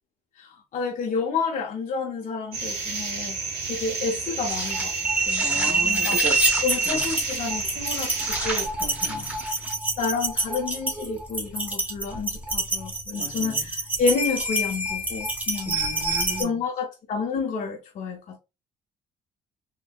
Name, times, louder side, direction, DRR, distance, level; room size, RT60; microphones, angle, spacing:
voice 1, 0.4-3.4 3.7-4.9 5.3-6.2 6.6-8.7 9.1-9.3 10.0-15.8 16.4-18.4, left 5 dB, 50° left, 0.6 m, -30 dB
sound 1, 2.5-8.7, right 4 dB, 75° right, 1.1 m, -31 dB
sound 2, 4.5-16.4, right 2 dB, 10° right, 0.8 m, -27 dB
voice 2, 5.4-6.4 6.8-7.0 8.8-9.4 13.2-13.7 15.7-16.6, right 2 dB, 45° right, 1.1 m, -36 dB
3.5 x 2.0 x 2.2 m
cardioid pair, 110°, 17 cm